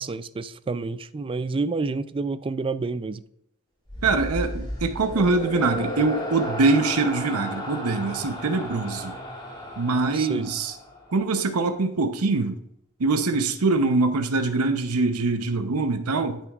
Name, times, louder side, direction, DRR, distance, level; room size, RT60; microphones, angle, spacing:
voice 1, 0.0-3.2 10.1-10.4, right 3 dB, 25° right, 0.4 m, -29 dB
sound 1, 3.9-11.3, equal, 20° left, 2.0 m, -33 dB
voice 2, 4.0-9.2 9.8-10.7 11.1-12.6 13.0-16.4, right 3 dB, 80° right, 0.8 m, -23 dB
10.0 x 9.0 x 2.4 m
head